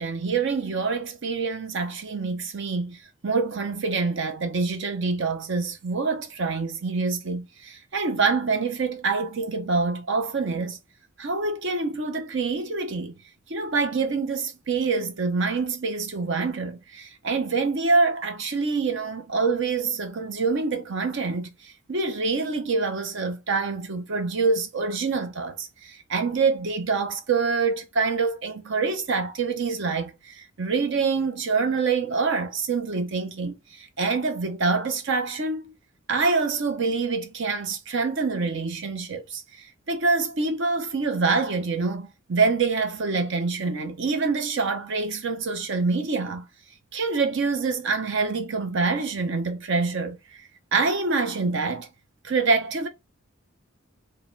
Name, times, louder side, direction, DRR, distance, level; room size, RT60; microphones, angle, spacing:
voice 1, 0.0-10.8 11.2-13.1 13.5-35.7 36.1-39.4 39.9-46.4 46.9-50.4 50.7-51.9 52.2-52.9, right 4 dB, 65° right, 0.7 m, -26 dB
4.7 x 2.2 x 3.2 m
head